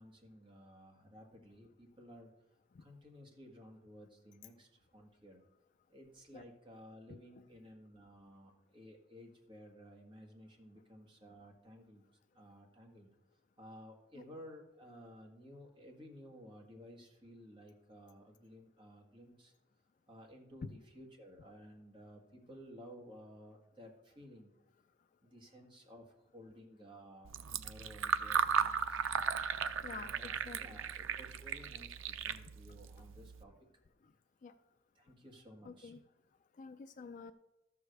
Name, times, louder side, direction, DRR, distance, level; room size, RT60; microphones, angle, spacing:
voice 1, 0.0-2.3 2.8-5.4 5.9-12.1 12.3-13.1 13.6-19.5 20.1-24.5 25.2-29.1 29.8-33.5 34.9-35.9, equal, 25° right, 1 dB, 1.7 m, -55 dB
Fill (with liquid), 27.2-33.4, right 7 dB, 90° right, 0.6 m, -36 dB
voice 2, 29.8-30.6 34.4-34.5 35.7-36.0 36.6-37.3, left 5 dB, 40° left, 11 dB, 0.3 m, -49 dB
13.0 x 4.9 x 6.5 m, 0.93 s
head